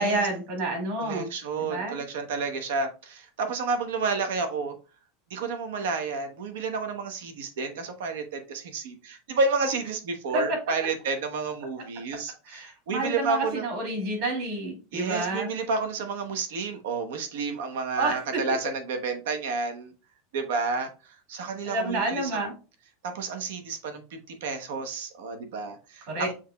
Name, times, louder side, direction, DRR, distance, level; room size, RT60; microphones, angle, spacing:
voice 1, 0.0-1.3 1.6-2.0 10.3-10.4 12.5-15.5 18.0-18.4 21.6-22.5 26.1-26.3, right 2 dB, 45° right, 0 dB, 2.1 m, -29 dB
voice 2, 1.0-4.7 5.3-13.7 14.9-19.9 20.3-22.3 23.0-26.3, right 4 dB, 75° right, 6 dB, 0.9 m, -30 dB
7.1 x 3.0 x 2.3 m, 0.33 s
supercardioid pair, 175°, 0 cm